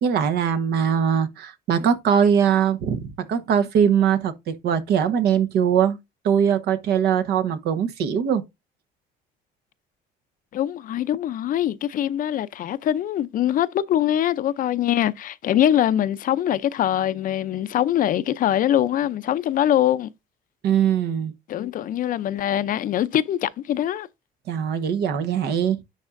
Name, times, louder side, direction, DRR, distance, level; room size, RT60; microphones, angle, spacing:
voice 1, 0.0-6.0 6.2-8.4 20.6-21.3 24.5-25.8, right 8 dB, 75° right, 1.1 m, -21 dB
voice 2, 10.5-20.1 21.5-24.1, left 11 dB, 55° left, 0.5 m, -23 dB
10.5 x 4.2 x 2.5 m
cardioid pair, 110°, 17 cm